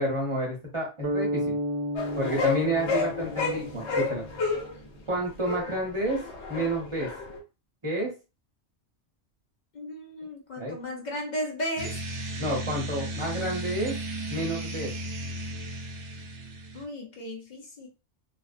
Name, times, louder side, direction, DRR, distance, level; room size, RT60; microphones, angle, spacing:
voice 1, 0.0-1.6 2.2-4.2 5.1-6.2 6.5-7.1 7.8-8.1 10.6-10.8 12.4-13.9 14.3-14.9, right 1 dB, 30° right, -2 dB, 0.8 m, -29 dB
sound 1, 1.0-5.0, equal, 60° right, 0.9 m, -33 dB
sound 2, 2.0-4.7 5.3-7.4, left 5 dB, 75° left, 1.0 m, -30 dB
voice 2, 9.7-12.0 16.7-17.9, equal, 50° left, 1 dB, 0.6 m, -35 dB
sound 3, 11.8-16.8, right 1 dB, 90° right, 0.9 m, -35 dB
2.5 x 2.0 x 2.5 m, 0.31 s
omnidirectional pair, 1.2 m